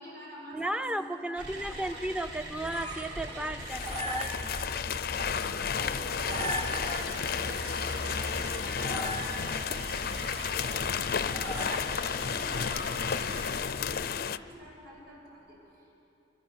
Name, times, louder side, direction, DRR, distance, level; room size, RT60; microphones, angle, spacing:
voice 1, 0.0-2.0 5.4-7.8 8.6-15.9, equal, 55° right, -2 dB, 6.5 m, -48 dB
voice 2, 0.5-4.5, right 1 dB, 5° right, 10 dB, 0.6 m, -34 dB
sound 1, 1.4-14.0, equal, 85° right, 4.5 m, -41 dB
sound 2, 2.3-13.4, right 1 dB, 35° right, 2.8 m, -40 dB
sound 3, 3.6-14.4, left 7 dB, 50° left, 0.5 m, -33 dB
26.5 x 24.0 x 6.5 m, 2.9 s
head